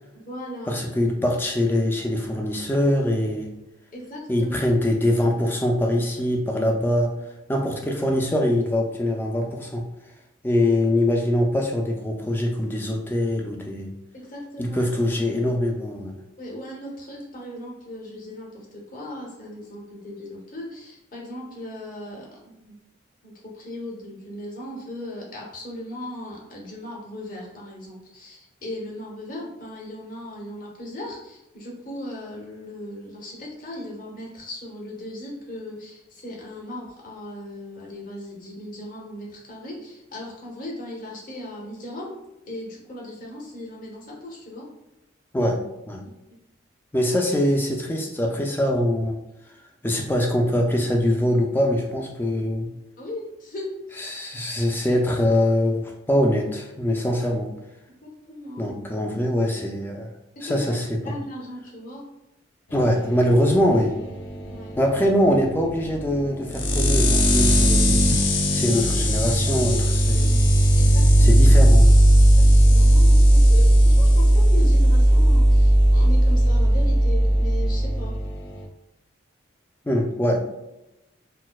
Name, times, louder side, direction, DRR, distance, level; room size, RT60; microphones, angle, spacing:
voice 1, 0.1-0.8 1.0-1.1 3.9-4.5 7.5-7.7 14.1-14.8 16.4-22.8 23.2-42.2 42.5-44.7 53.0-54.0 58.0-58.8 60.4-60.7 61.0-62.0 64.4-64.8 70.7-71.5 72.4-78.2, left 1 dB, 45° left, -3 dB, 0.9 m, -37 dB
voice 2, 0.7-3.5 4.3-7.1 7.5-9.8 10.4-13.9 14.6-16.1 45.3-45.6 45.9-46.0 46.9-49.2 49.8-52.7 54.0-57.5 58.6-60.1 60.4-61.0 62.7-64.0 64.8-68.0 68.5-70.4 71.2-71.9 79.9-80.5, left 1 dB, 10° left, 1 dB, 0.3 m, -23 dB
sound 1, 62.7-78.6, right 1 dB, 70° left, 0.5 m, -17 dB
4.1 x 2.1 x 2.3 m, 0.93 s
head